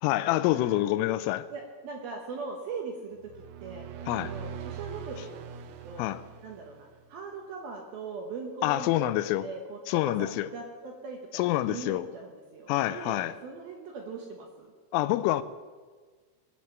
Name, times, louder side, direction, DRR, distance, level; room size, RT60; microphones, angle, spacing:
voice 1, 0.0-1.5 4.1-4.3 6.0-6.2 8.6-9.5 9.9-10.5 11.3-12.1 12.7-13.3 14.9-15.4, left 15 dB, 85° left, 3.1 m, -27 dB
voice 2, 0.5-0.9 1.5-3.2 3.6-3.8 4.2-5.5 5.8-6.1 6.4-11.4 11.7-14.7, right 4 dB, 70° right, 2.4 m, -40 dB
sound 1, 3.2-7.1, right 8 dB, 90° right, 2.3 m, -42 dB
20.5 x 7.3 x 7.1 m
omnidirectional pair, 5.9 m